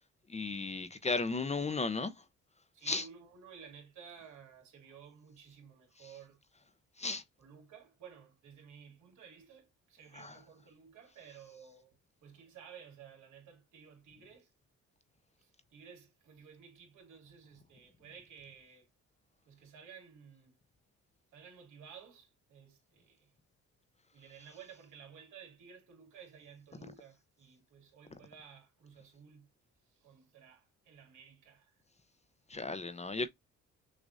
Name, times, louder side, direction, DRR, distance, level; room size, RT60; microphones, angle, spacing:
voice 1, 0.3-2.2 2.9-3.0 7.0-7.2 10.2-10.4 32.5-33.3, left 3 dB, 20° left, 0.6 m, -35 dB
voice 2, 2.7-6.4 7.4-14.5 15.4-18.9 19.5-20.6 21.3-23.3 24.1-29.5 29.8-31.8 32.5-32.6, right 7 dB, 75° right, 2.5 m, -55 dB
6.3 x 2.4 x 2.6 m
cardioid pair, 90°, 30 cm